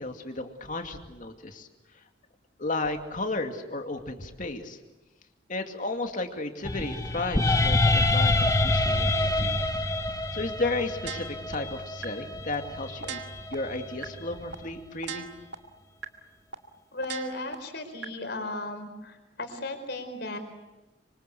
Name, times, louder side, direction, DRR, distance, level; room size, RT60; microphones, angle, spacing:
voice 1, 0.0-1.7 2.6-4.8 5.5-9.6 10.3-13.2 13.5-15.3, left 2 dB, 45° left, 5 dB, 2.5 m, -33 dB
sound 1, 6.6-14.8, left 2 dB, 15° left, 1.1 m, -27 dB
sound 2, 11.1-11.5 12.0-12.1 12.5-12.6 13.0-13.5 14.0-14.1 14.5-14.6 15.0-15.5 16.0-16.1 16.5-16.6 17.0-17.5 18.0-18.1, right 5 dB, 70° right, 2.1 m, -37 dB
voice 2, 16.9-20.4, left 2 dB, 60° left, 6 dB, 4.8 m, -36 dB
26.0 x 25.5 x 8.3 m, 1.1 s
head